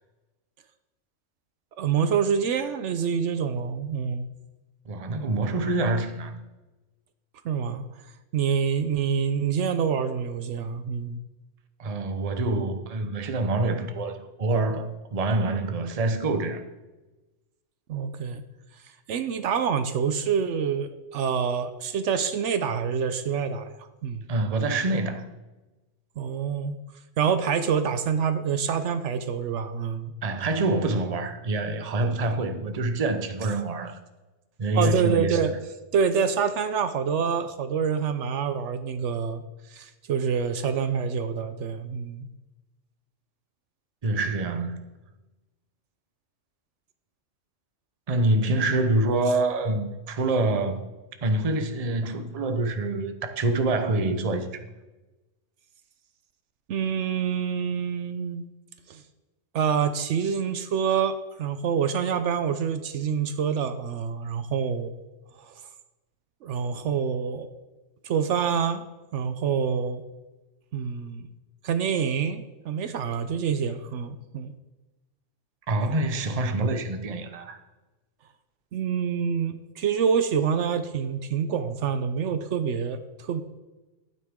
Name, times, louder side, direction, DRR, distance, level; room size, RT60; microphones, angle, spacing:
voice 1, 1.8-4.3 7.4-7.8 8.3-11.2 17.9-18.4 19.1-23.7 24.0-24.2 26.2-26.8 27.2-30.1 34.7-35.5 35.9-39.4 39.7-42.3 56.7-58.4 58.9-59.0 59.5-64.9 65.5-65.6 66.4-67.5 68.0-68.8 69.1-70.0 70.7-71.3 71.6-74.5 78.7-83.4, right 7 dB, 75° right, 0.9 m, -26 dB
voice 2, 4.9-6.4 11.8-16.7 24.3-25.2 30.2-34.0 34.6-35.5 44.0-44.9 48.1-50.8 51.2-54.6 75.7-77.6, right 2 dB, 35° right, 0.8 m, -26 dB
12.0 x 9.3 x 3.6 m
omnidirectional pair, 1.3 m